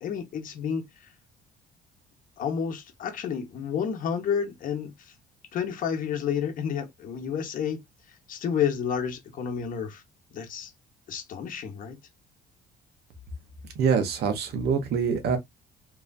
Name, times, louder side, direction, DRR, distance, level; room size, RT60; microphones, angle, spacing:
voice 1, 0.0-1.1 2.4-5.1 5.5-7.8 8.1-10.0 10.3-10.7 11.1-12.0, left 7 dB, 55° left, 0.9 m, -30 dB
voice 2, 13.8-15.4, right 6 dB, 70° right, 1.0 m, -25 dB
3.0 x 2.4 x 2.2 m
cardioid pair, 110°, 17 cm